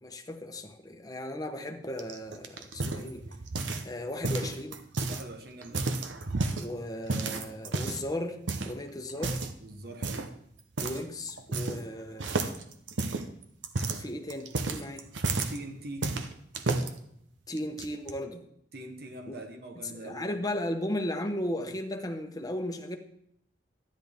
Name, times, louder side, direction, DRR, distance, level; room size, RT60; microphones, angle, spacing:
voice 1, 0.0-3.3 3.8-4.8 6.6-8.4 8.6-9.4 10.8-12.4 14.0-15.0 17.5-18.4 19.3-19.4 19.8-23.0, left 1 dB, 20° left, 4 dB, 0.9 m, -36 dB
sound 1, 2.0-3.9 4.2-5.2 5.6-6.7 7.1-8.1 8.5-8.7 9.2-9.6 10.0-10.3 10.8-11.0 11.3-11.9 12.2-15.6 16.0-16.9 17.6-18.1, right 3 dB, 80° right, 0.8 m, -31 dB
voice 2, 5.1-6.0 9.6-10.3 15.5-16.1 18.7-20.4, right 1 dB, 55° right, 5 dB, 1.1 m, -43 dB
12.5 x 10.0 x 3.6 m, 0.73 s
head